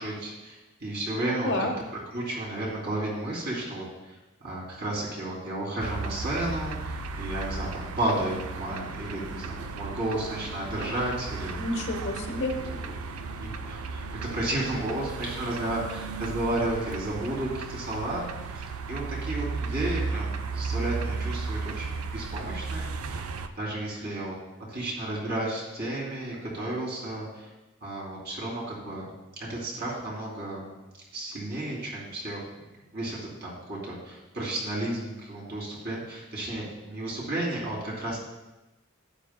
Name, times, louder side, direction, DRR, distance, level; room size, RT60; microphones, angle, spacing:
voice 1, 0.0-1.7 2.1-11.6 12.7-12.9 13.2-18.2 18.5-23.2 23.6-24.3 24.7-27.5 27.8-29.1 29.5-30.7 31.1-32.4 32.9-38.2, right 1 dB, 50° right, -4 dB, 3.0 m, -33 dB
sound 1, 5.8-23.5, right 4 dB, 85° right, 0.5 m, -35 dB
voice 2, 11.6-12.5, left 2 dB, 55° left, 4 dB, 1.1 m, -29 dB
12.0 x 9.5 x 2.2 m, 1.1 s
head